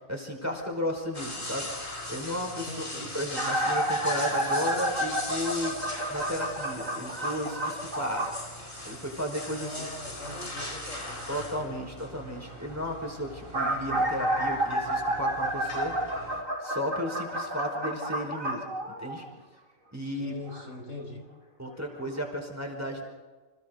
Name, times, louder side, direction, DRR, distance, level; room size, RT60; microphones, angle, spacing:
voice 1, 0.1-1.7 2.1-5.8 6.1-8.3 8.8-9.9 10.3-10.4 11.3-15.9 16.6-19.2 19.9-20.3 21.6-23.0, equal, 10° right, 1 dB, 4.8 m, -34 dB
sound 1, 1.1-16.4, left 1 dB, 40° left, 4.1 m, -40 dB
voice 2, 2.7-3.1 9.6-11.8 20.2-21.3, left 2 dB, 65° left, 1 dB, 5.7 m, -41 dB
sound 2, 3.4-8.4 13.2-19.4 20.5-20.6 21.7-21.8 22.2-22.3, right 1 dB, 75° right, 5.6 m, -30 dB
30.0 x 27.5 x 4.0 m, 1.3 s
omnidirectional pair, 1.4 m